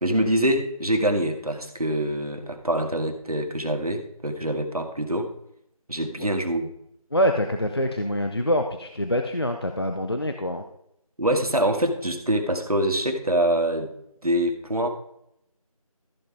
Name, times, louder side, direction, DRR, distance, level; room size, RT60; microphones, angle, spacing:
voice 1, 0.0-5.3 5.9-6.7 11.2-13.9 14.2-14.9, right 1 dB, 75° right, 5 dB, 2.1 m, -25 dB
voice 2, 7.1-10.6, equal, 40° left, 5 dB, 0.7 m, -25 dB
14.5 x 5.6 x 4.8 m, 0.77 s
figure-of-eight pair, 170°, 19 cm